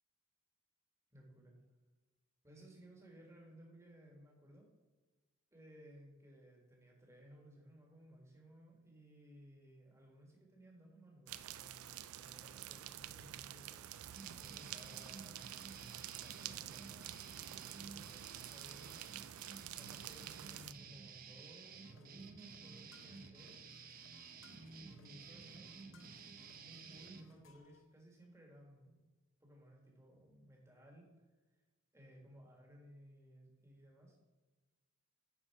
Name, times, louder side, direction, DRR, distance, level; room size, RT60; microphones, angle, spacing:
voice 1, 1.1-1.6 2.4-4.7 5.5-13.8 14.4-15.7 16.1-19.0 19.7-23.6 24.5-29.0 29.4-31.6 31.9-34.2, right 1 dB, 15° right, -1 dB, 1.7 m, -60 dB
sound 1, 11.3-20.7, right 12 dB, 85° right, 0.4 m, -49 dB
sound 2, 14.1-27.3, right 5 dB, 40° right, 0.6 m, -54 dB
sound 3, 21.8-27.8, left 2 dB, 65° left, 0.7 m, -65 dB
10.0 x 4.5 x 4.7 m, 1.2 s
head